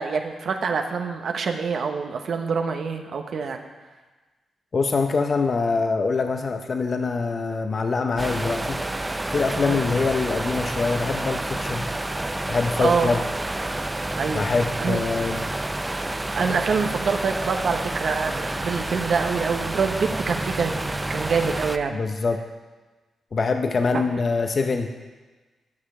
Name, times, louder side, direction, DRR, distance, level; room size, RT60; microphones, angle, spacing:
voice 1, 0.0-3.6 9.5-9.8 12.8-13.1 14.1-14.5 14.8-15.0 16.3-22.0, right 5 dB, 65° right, 5 dB, 0.9 m, -25 dB
voice 2, 4.7-8.8 9.3-11.9 12.5-13.2 14.3-15.5 21.9-22.4 23.3-24.9, left 4 dB, 50° left, 6 dB, 0.7 m, -24 dB
sound 1, 8.2-21.8, right 2 dB, 20° right, 0.5 m, -29 dB
12.0 x 6.5 x 4.9 m, 1.3 s
supercardioid pair, 45°, 0 cm